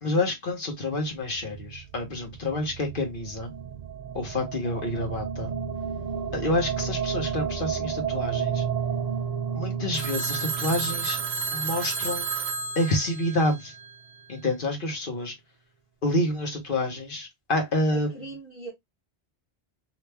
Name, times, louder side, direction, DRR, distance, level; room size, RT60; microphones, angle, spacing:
voice 1, 0.0-3.5 4.1-5.5 6.3-8.6 9.5-11.2 11.5-12.3 12.7-13.7 14.3-15.3 16.0-18.1, left 1 dB, 55° left, 1.2 m, -28 dB
sound 1, 1.0-13.2, right 7 dB, 50° right, 0.5 m, -33 dB
Telephone, 9.9-14.2, right 5 dB, 70° right, 0.9 m, -31 dB
voice 2, 17.9-18.7, right 4 dB, 15° right, 0.9 m, -40 dB
3.0 x 2.7 x 3.3 m
omnidirectional pair, 1.1 m